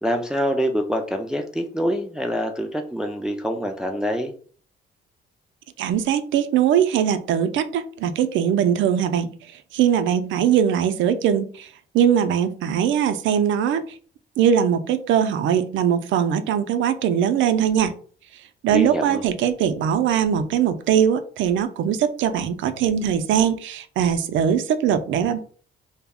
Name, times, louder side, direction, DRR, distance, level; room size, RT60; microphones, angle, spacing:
voice 1, 0.0-4.3 18.7-19.2, equal, 5° right, 4 dB, 0.3 m, -25 dB
voice 2, 5.8-9.3 9.7-11.7 11.9-14.0 14.4-18.0 18.6-25.4, right 8 dB, 75° right, 10 dB, 0.4 m, -21 dB
2.3 x 2.0 x 3.5 m, 0.43 s
cardioid pair, 90°, 20 cm